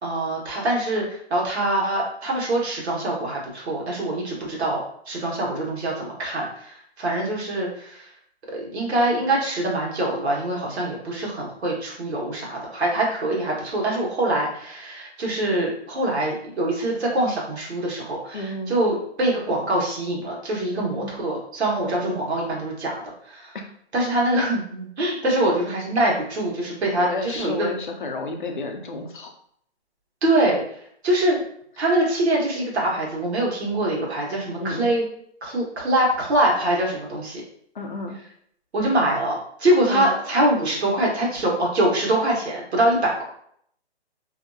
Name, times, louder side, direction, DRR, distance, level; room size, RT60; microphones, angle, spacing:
voice 1, 0.0-4.8 5.1-8.1 8.5-23.6 23.9-27.7 30.2-30.6 31.0-31.4 31.8-35.0 35.4-37.4 38.7-43.2, right 1 dB, 75° right, -3 dB, 1.2 m, -24 dB
voice 2, 18.3-18.7 20.7-21.1 21.8-22.2 27.0-29.3 34.6-34.9 37.7-38.2 39.9-40.1, left 2 dB, 50° left, 2 dB, 0.5 m, -31 dB
2.7 x 2.6 x 2.3 m, 0.67 s
hypercardioid pair, 180°, 33 cm